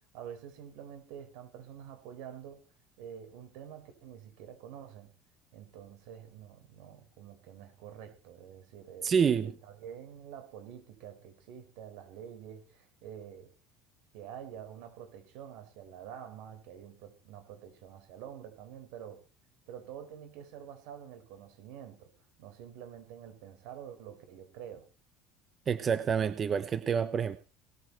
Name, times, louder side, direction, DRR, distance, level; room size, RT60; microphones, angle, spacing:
voice 1, 0.1-2.6 3.0-5.1 5.5-9.2 9.6-13.5 14.1-19.2 19.7-22.1 22.4-24.9, right 9 dB, 75° right, 7 dB, 5.9 m, -47 dB
voice 2, 9.0-9.5 25.7-27.4, right 7 dB, 25° right, 12 dB, 0.9 m, -28 dB
19.5 x 14.5 x 4.5 m, 0.36 s
cardioid pair, 155°, 0 cm